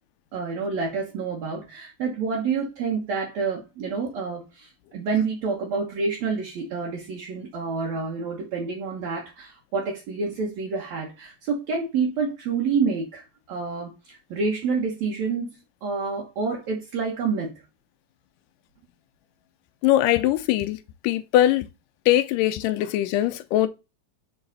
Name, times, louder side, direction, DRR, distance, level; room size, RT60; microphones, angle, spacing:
voice 1, 0.3-17.5, right 5 dB, 65° right, 2.3 m, -28 dB
voice 2, 19.8-20.8 21.0-21.7 22.1-23.7, left 13 dB, 85° left, 2.2 m, -21 dB
6.6 x 4.0 x 4.0 m
omnidirectional pair, 3.8 m